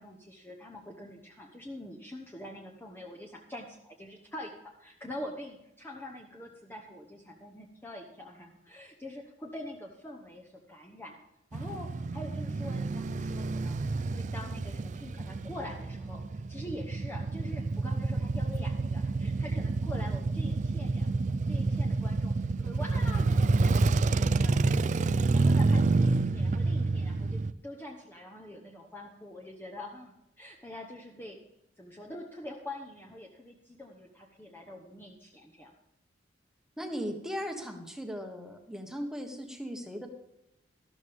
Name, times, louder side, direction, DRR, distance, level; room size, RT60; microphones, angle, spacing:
voice 1, 0.0-4.5 4.8-11.2 11.5-13.8 14.1-31.4 31.8-35.7, left 1 dB, 10° left, -1 dB, 1.0 m, -45 dB
Male speech man speaking / Motorcycle / Idling, 11.5-27.5, right 3 dB, 40° right, 0.4 m, -28 dB
voice 2, 36.8-40.1, equal, 5° right, 4 dB, 1.3 m, -37 dB
13.0 x 12.5 x 3.6 m, 0.88 s
head